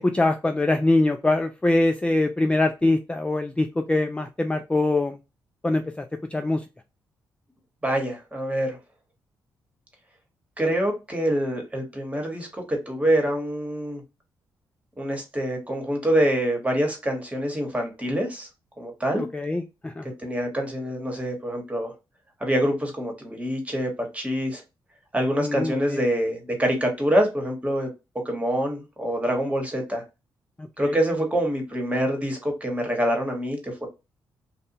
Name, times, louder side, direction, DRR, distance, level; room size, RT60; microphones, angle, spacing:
voice 1, 0.0-5.2 5.6-6.6 19.2-20.1 25.4-26.1 30.6-31.0, left 2 dB, 15° left, 0.3 m, -23 dB
voice 2, 7.8-8.8 10.6-14.0 15.0-18.5 18.8-19.2 20.2-21.9 22.4-24.6 25.1-27.9 28.2-30.0 30.8-33.9, equal, 15° right, 1.3 m, -25 dB
2.6 x 2.2 x 2.7 m
supercardioid pair, 55°, 9 cm